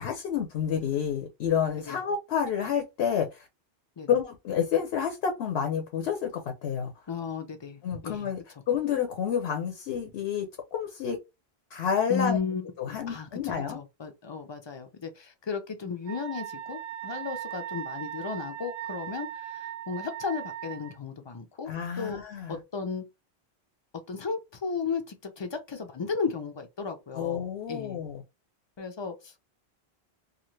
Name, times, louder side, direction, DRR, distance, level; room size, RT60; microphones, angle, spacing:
voice 1, 0.0-3.5 4.1-6.9 7.8-8.4 8.7-11.2 11.7-12.4 12.8-13.8 21.7-22.6 27.1-28.2, left 8 dB, 75° left, 0.9 m, -29 dB
voice 2, 7.1-8.3 12.1-21.7 22.0-22.2 22.5-23.0 24.1-28.0 28.8-29.4, left 5 dB, 35° left, 0.4 m, -35 dB
Wind instrument woodwind instrument, 16.1-21.0, right 11 dB, 55° right, 0.6 m, -38 dB
2.6 x 2.4 x 3.0 m
omnidirectional pair, 1.1 m